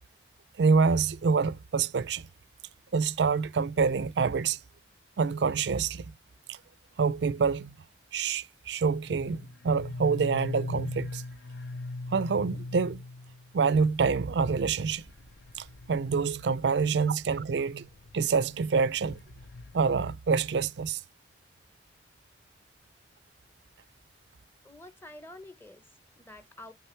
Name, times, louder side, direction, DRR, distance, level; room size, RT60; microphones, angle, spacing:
voice 1, 0.6-2.3 2.9-4.6 5.2-6.0 6.5-6.6 7.0-7.8 8.1-11.2 12.1-13.0 13.5-15.0 15.6-17.9 18.1-19.2 19.7-21.0, right 5 dB, 80° right, 0.4 m, -26 dB
sound 1, 9.1-17.2 17.8-20.1, left 2 dB, 85° left, 0.7 m, -41 dB
voice 2, 24.6-26.7, left 1 dB, 10° left, 0.9 m, -48 dB
8.7 x 3.8 x 4.4 m
head